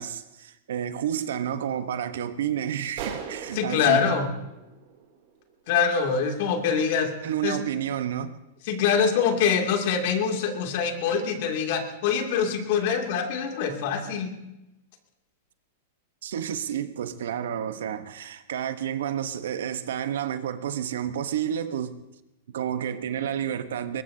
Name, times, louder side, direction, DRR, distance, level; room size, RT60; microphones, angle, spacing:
voice 1, 0.0-4.1 7.2-8.4 16.2-22.0 22.5-24.0, right 9 dB, 80° right, 1.0 m, -30 dB
sound 1, 3.0-5.5, right 7 dB, 60° right, 2.8 m, -39 dB
voice 2, 3.5-4.3 5.7-7.1 7.4-7.6 8.6-14.3, left 6 dB, 60° left, 2.6 m, -24 dB
21.5 x 20.0 x 2.8 m
hypercardioid pair, 125°, 0 cm